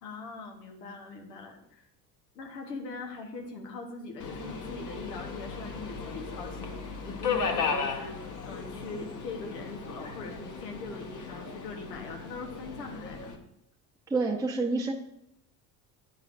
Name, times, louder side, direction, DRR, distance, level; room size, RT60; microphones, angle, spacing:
voice 1, 0.0-1.9 2.3-13.3, left 3 dB, 85° left, 3 dB, 1.3 m, -41 dB
Subway metro underground, 4.2-13.4, left 5 dB, 40° left, 1.2 m, -36 dB
voice 2, 14.1-14.9, right 3 dB, 5° right, -3 dB, 0.9 m, -27 dB
9.3 x 5.4 x 2.6 m, 0.81 s
hypercardioid pair, 70°, 48 cm